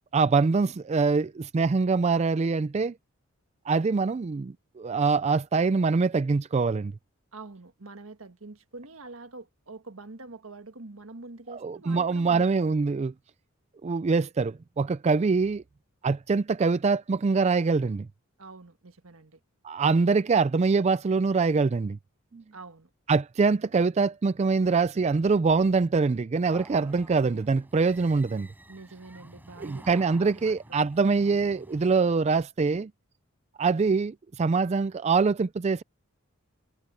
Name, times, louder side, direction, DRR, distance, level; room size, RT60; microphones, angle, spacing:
voice 1, 0.1-2.9 3.7-6.9 11.5-13.1 13.8-15.6 16.0-18.1 19.6-22.0 22.3-22.4 23.1-28.5 29.6-32.9 33.6-35.8, right 4 dB, 30° right, 0.3 m, -24 dB
voice 2, 7.3-12.6 18.4-19.4 22.5-22.9 28.7-30.8, right 3 dB, 75° right, 1.6 m, -45 dB
sound 1, 26.5-31.9, right 1 dB, 10° right, 7.1 m, -50 dB
head